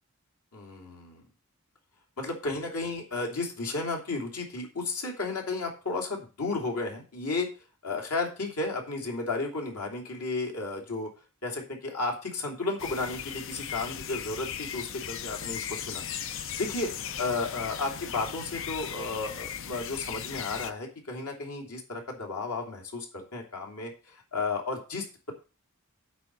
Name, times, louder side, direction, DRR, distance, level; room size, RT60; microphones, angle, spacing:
voice 1, 0.5-1.2 2.2-7.5 7.8-11.1 11.4-16.0 16.6-16.9 17.2-25.3, left 3 dB, 90° left, 1 dB, 2.9 m, -33 dB
sound 1, 12.8-20.7, left 8 dB, 60° left, 0.7 m, -37 dB
8.3 x 4.8 x 7.4 m, 0.33 s
head